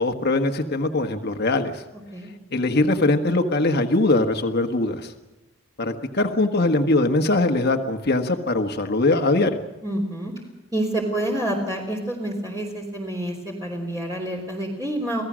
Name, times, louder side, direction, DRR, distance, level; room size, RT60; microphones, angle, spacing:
voice 1, 0.0-1.8 2.5-5.1 5.8-9.6, left 2 dB, 55° left, 5 dB, 1.5 m, -21 dB
voice 2, 9.8-10.3 10.7-15.2, right 1 dB, 20° right, -1 dB, 3.3 m, -28 dB
27.5 x 17.0 x 6.3 m, 1.1 s
head